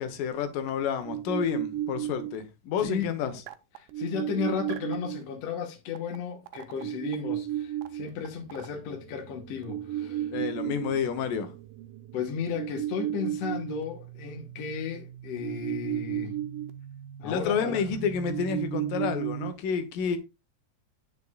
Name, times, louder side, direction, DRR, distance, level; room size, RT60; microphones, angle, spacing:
voice 1, 0.0-3.3 10.3-11.5 17.2-20.2, left 7 dB, 85° left, 2.7 m, -30 dB
sound 1, 0.7-0.8 1.0-2.4 3.5-5.2 6.0-6.2 6.5-19.5, right 12 dB, 80° right, 2.3 m, -34 dB
voice 2, 2.8-3.4 3.8-10.3 12.1-16.4 17.2-17.9, left 7 dB, 65° left, 1.9 m, -34 dB
9.5 x 6.4 x 2.3 m
omnidirectional pair, 3.8 m